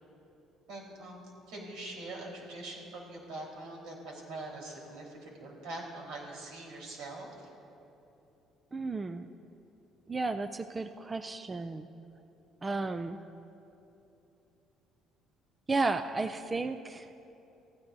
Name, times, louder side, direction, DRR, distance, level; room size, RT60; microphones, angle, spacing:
voice 1, 0.7-1.2 1.5-7.5, right 2 dB, 90° right, -2 dB, 4.1 m, -43 dB
voice 2, 8.7-9.3 10.1-11.9 12.6-13.2 15.7-17.1, right 3 dB, 20° right, 10 dB, 0.4 m, -33 dB
28.0 x 15.0 x 2.7 m, 2.9 s
cardioid pair, 150°, 0 cm